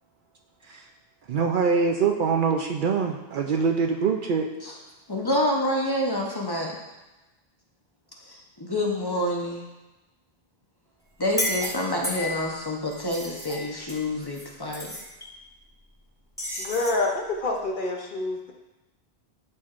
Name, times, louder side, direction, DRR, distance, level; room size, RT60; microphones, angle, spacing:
voice 1, 1.3-4.5, right 5 dB, 60° right, 3 dB, 0.6 m, -24 dB
voice 2, 5.1-6.8 8.3-9.6 11.2-14.9 15.2-15.3, left 1 dB, 25° left, -1 dB, 0.8 m, -27 dB
sound 1, 11.2-12.5 12.9-14.5 14.7-15.0 16.4-17.0, left 1 dB, 5° right, 1.2 m, -32 dB
voice 3, 16.6-18.5, left 2 dB, 55° left, 2 dB, 0.8 m, -27 dB
10.5 x 4.4 x 2.5 m, 1.1 s
omnidirectional pair, 1.1 m